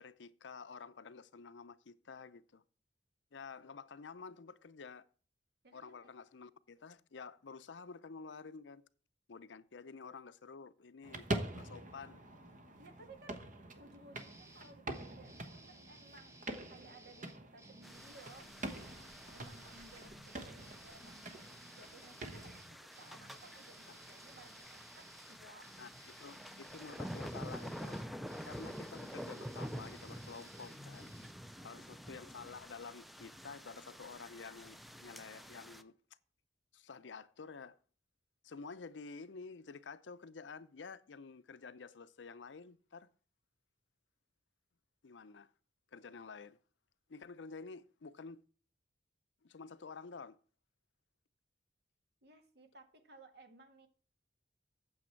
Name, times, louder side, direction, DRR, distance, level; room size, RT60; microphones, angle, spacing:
voice 1, 0.0-2.6 3.3-5.0 5.7-8.8 9.3-11.3 11.6-12.2 25.8-28.1 28.5-31.1 31.6-35.9 36.7-37.8 38.4-43.1 45.0-45.5 45.9-46.6 47.1-48.4 49.4-50.4, left 5 dB, 90° left, 0.6 m, -50 dB
voice 2, 5.6-6.1 12.8-13.4 13.7-16.4 16.7-21.2 21.7-25.7 31.5-32.0 52.2-53.9, right 2 dB, 65° right, 1.9 m, -59 dB
sound 1, 11.0-22.6, right 1 dB, 45° right, 1.2 m, -45 dB
sound 2, 14.1-31.3, right 1 dB, 15° right, 1.0 m, -58 dB
sound 3, 17.8-35.8, equal, ahead, 0.5 m, -49 dB
8.7 x 7.7 x 4.5 m
head